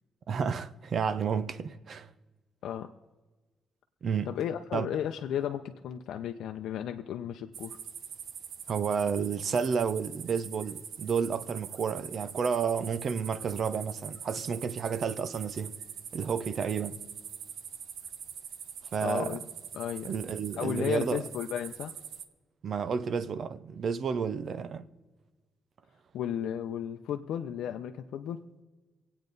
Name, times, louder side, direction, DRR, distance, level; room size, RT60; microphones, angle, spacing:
voice 1, 0.3-2.1 4.0-4.3 4.7-4.9 8.7-15.8 16.1-17.0 18.9-19.4 20.1-21.2 22.6-24.9, right 6 dB, 45° right, 0.6 m, -31 dB
voice 2, 4.2-7.8 19.0-19.4 19.7-20.2 20.6-21.9 26.1-28.4, left 9 dB, 85° left, 0.6 m, -34 dB
sound 1, 7.5-22.2, right 8 dB, 75° right, 0.8 m, -43 dB
26.0 x 8.7 x 4.0 m
cardioid pair, 175°, 0 cm